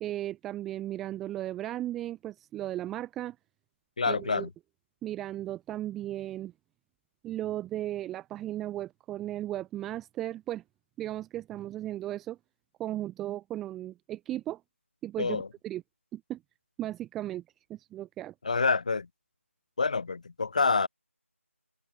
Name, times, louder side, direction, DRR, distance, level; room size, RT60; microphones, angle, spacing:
voice 1, 0.0-3.4 4.1-4.5 5.0-6.5 7.2-10.6 11.0-12.4 12.8-14.6 15.0-15.8 16.1-16.4 16.8-17.4 17.7-18.3, right 13 dB, ahead, 0.4 m, -36 dB
voice 2, 4.0-4.5 15.2-15.5 18.4-19.1 19.8-20.9, left 4 dB, 30° left, 4.8 m, -27 dB
figure-of-eight pair, 170°, 8 cm